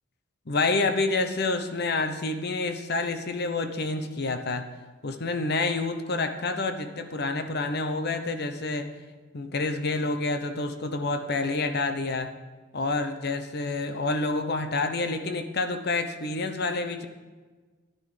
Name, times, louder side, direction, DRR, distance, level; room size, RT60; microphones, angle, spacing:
voice 1, 0.5-4.7 5.0-8.9 9.3-12.3 12.7-17.1, left 3 dB, 55° left, 8 dB, 0.9 m, -28 dB
13.0 x 10.0 x 5.1 m, 1.3 s
head